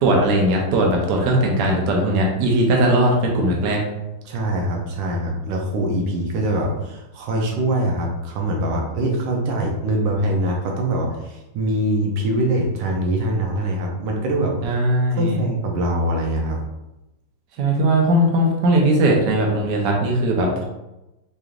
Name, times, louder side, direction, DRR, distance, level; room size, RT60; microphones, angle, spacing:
voice 1, 0.0-3.8 14.6-15.4 17.6-20.6, right 1 dB, 70° right, 0 dB, 1.4 m, -19 dB
voice 2, 4.2-14.6 15.2-16.6, right 1 dB, 85° right, 0 dB, 1.4 m, -23 dB
4.8 x 3.2 x 2.4 m, 0.96 s
omnidirectional pair, 2.0 m